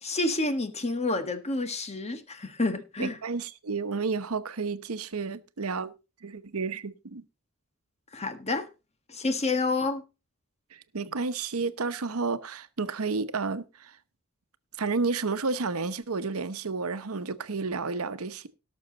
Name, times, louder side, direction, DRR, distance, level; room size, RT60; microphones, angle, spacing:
voice 1, 0.0-3.2 8.1-8.7 9.1-10.0, left 2 dB, 30° left, 1.5 m, -29 dB
voice 2, 3.0-5.9 6.2-7.2 10.7-14.0 14.8-18.5, right 4 dB, 85° right, 0.9 m, -31 dB
18.0 x 6.4 x 4.0 m
head